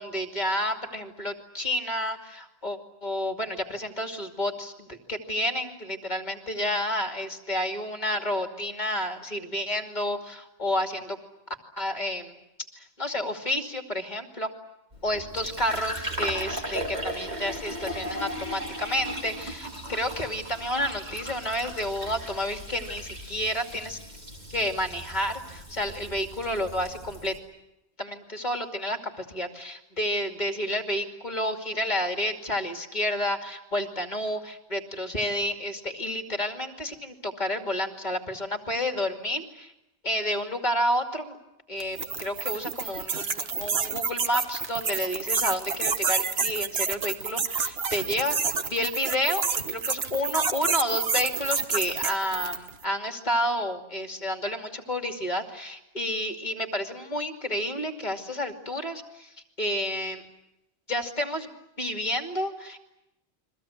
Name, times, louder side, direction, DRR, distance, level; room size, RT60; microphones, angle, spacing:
voice 1, 0.0-11.2 11.8-12.4 12.8-14.5 15.0-24.0 24.5-27.4 28.0-39.7 40.0-41.4 41.7-48.4 48.7-60.2 60.9-61.5 61.8-62.8, left 1 dB, 40° left, 4 dB, 2.7 m, -30 dB
Fill (with liquid), 14.9-27.4, equal, 40° right, 3.9 m, -37 dB
sound 1, 41.8-52.7, right 5 dB, 65° right, 1.5 m, -29 dB
30.0 x 23.0 x 8.1 m, 0.89 s
omnidirectional pair, 1.1 m